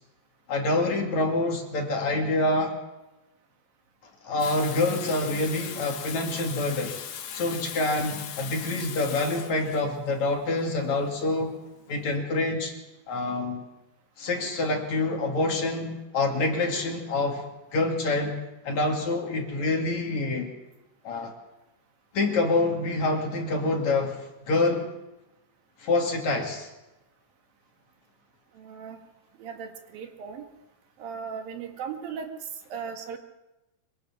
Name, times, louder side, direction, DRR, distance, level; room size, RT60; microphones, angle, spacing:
voice 1, 0.5-2.8 4.2-7.0 7.3-11.6 11.9-12.7 13.1-13.6 14.2-18.4 18.6-20.5 21.0-21.4 22.1-24.9 25.8-26.7, left 2 dB, 50° left, 2 dB, 3.8 m, -26 dB
Water tap faucet / Sink (filling or washing), 4.4-12.1, left 8 dB, 75° left, 3.5 m, -39 dB
voice 2, 28.5-29.0 29.4-30.4 31.0-33.2, right 6 dB, 75° right, 5 dB, 3.6 m, -37 dB
25.0 x 23.5 x 6.0 m, 0.99 s
omnidirectional pair, 4.2 m